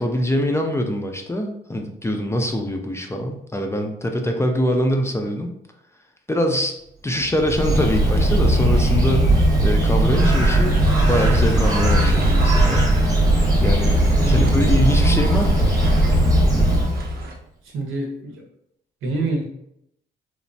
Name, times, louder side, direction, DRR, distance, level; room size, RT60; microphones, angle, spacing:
voice 1, 0.0-5.5 6.3-6.8 7.0-10.8 11.1-12.8 13.6-15.7, left 1 dB, 15° left, 4 dB, 0.3 m, -23 dB
Bird, 7.2-17.2, right 1 dB, 20° right, 1.0 m, -18 dB
sound 1, 10.3-17.3, right 3 dB, 50° right, 0.6 m, -38 dB
voice 2, 14.2-14.6 17.7-18.4 19.0-19.4, right 2 dB, 90° right, 0 dB, 0.8 m, -26 dB
3.1 x 2.1 x 2.6 m, 0.75 s
cardioid pair, 90°, 20 cm